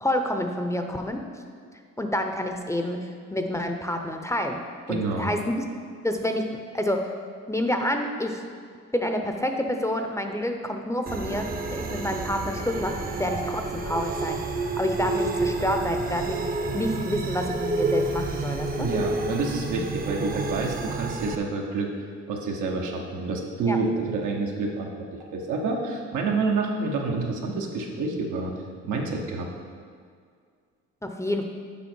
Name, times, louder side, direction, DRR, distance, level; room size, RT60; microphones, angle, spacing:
voice 1, 0.0-1.2 2.0-4.6 4.9-5.4 6.0-7.1 7.5-8.4 8.9-14.4 14.8-16.4 16.7-18.9 23.7-23.8 31.0-31.4, left 1 dB, 10° left, 4 dB, 0.6 m, -28 dB
voice 2, 4.9-5.3 18.8-21.9 22.3-28.5 28.8-29.5, right 3 dB, 85° right, 1 dB, 1.1 m, -28 dB
sound 1, 11.1-21.4, right 3 dB, 30° right, 0.6 m, -29 dB
7.2 x 5.1 x 4.5 m, 2.1 s
cardioid pair, 90°, 30 cm